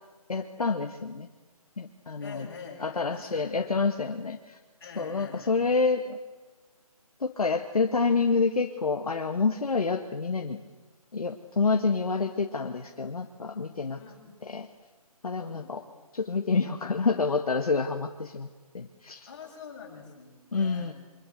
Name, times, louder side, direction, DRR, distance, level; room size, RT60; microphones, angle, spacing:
voice 1, 0.3-1.3 1.8-2.5 2.8-4.6 5.0-6.2 7.2-10.6 11.1-14.0 14.4-14.7 15.2-15.8 16.1-18.5 18.7-19.2 20.5-20.9, left 4 dB, 65° left, 4 dB, 2.0 m, -28 dB
voice 2, 2.2-3.8 4.8-5.7 14.0-14.3 15.4-15.7 19.3-20.9, left 6 dB, 30° left, -2 dB, 7.9 m, -45 dB
26.5 x 25.0 x 8.1 m, 1.3 s
figure-of-eight pair, 160°, 20 cm